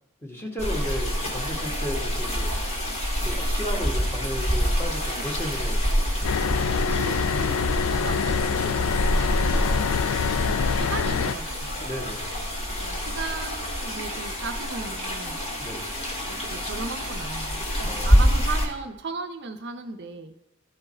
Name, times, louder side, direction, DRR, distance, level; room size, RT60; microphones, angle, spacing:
voice 1, 0.2-2.6 3.2-6.3 9.5-10.3 11.8-12.3 15.6-15.9 17.8-18.2, equal, 10° left, -1 dB, 1.4 m, -35 dB
sound 1, 0.6-18.7, equal, 30° left, 1.6 m, -27 dB
voice 2, 5.1-5.5 6.7-9.7 10.4-11.9 12.8-15.4 16.3-20.3, right 4 dB, 55° right, 4 dB, 0.6 m, -37 dB
sound 2, 6.2-11.3, left 6 dB, 75° left, 0.4 m, -25 dB
13.5 x 4.6 x 4.3 m, 0.91 s
head